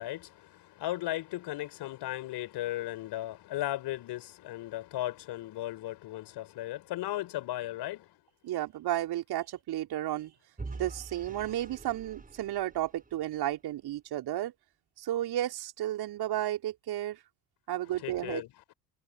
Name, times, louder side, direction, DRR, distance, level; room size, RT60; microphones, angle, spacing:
voice 1, 0.0-8.1 18.0-18.5, left 15 dB, 50° left, 4.7 m, -36 dB
voice 2, 8.4-10.3 10.7-14.5 15.0-17.2 17.7-18.4, right 13 dB, 50° right, 4.5 m, -33 dB
Vehicle / Engine, 10.6-13.6, right 3 dB, 15° right, 5.6 m, -45 dB
figure-of-eight pair, 55°, 49 cm